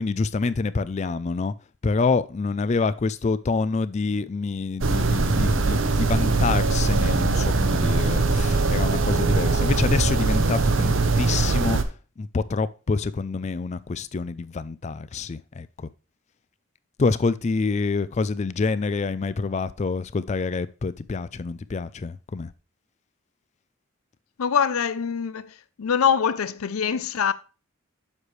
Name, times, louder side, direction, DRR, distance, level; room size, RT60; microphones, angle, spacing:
voice 1, 0.0-1.5 1.8-11.8 12.2-15.9 17.0-22.5, left 4 dB, 30° left, 0.3 m, -27 dB
sound 1, 4.8-11.8, right 3 dB, 65° right, 0.7 m, -21 dB
voice 2, 24.4-27.3, left 7 dB, 90° left, 0.5 m, -24 dB
7.4 x 6.4 x 3.2 m
head